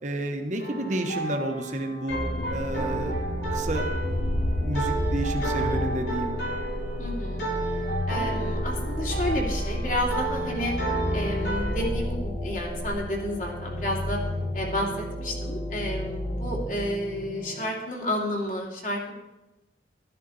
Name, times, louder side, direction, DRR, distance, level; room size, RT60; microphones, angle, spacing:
voice 1, 0.0-2.2 2.5-3.2 3.5-3.9 4.6-6.4, right 1 dB, 45° right, 4 dB, 1.1 m, -30 dB
sound 1, 0.6-11.8, right 2 dB, 65° left, 2.8 m, -33 dB
sound 2, 2.1-17.7, left 1 dB, 90° left, 2.5 m, -31 dB
voice 2, 7.0-7.4 8.1-10.7 11.1-14.2 14.5-14.9 15.2-19.1, left 1 dB, 45° left, -1 dB, 2.5 m, -31 dB
12.5 x 10.5 x 4.1 m, 1.0 s
head